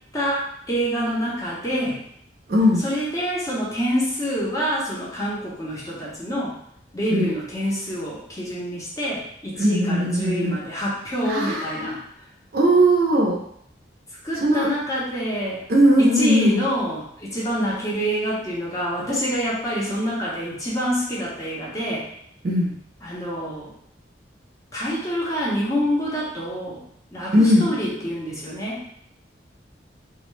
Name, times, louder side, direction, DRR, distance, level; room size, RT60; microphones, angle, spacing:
voice 1, 0.1-2.0 2.8-6.5 6.9-12.0 14.2-15.6 16.0-22.1 23.0-23.7 24.7-26.8 27.1-28.8, equal, 20° left, -6 dB, 0.6 m, -26 dB
voice 2, 2.5-2.8 7.1-7.3 9.6-10.6 11.2-12.0 12.5-13.4 14.4-14.7 15.7-16.6 22.4-22.7 27.3-27.7, equal, 55° right, -2 dB, 0.5 m, -19 dB
2.2 x 2.0 x 3.1 m, 0.69 s
head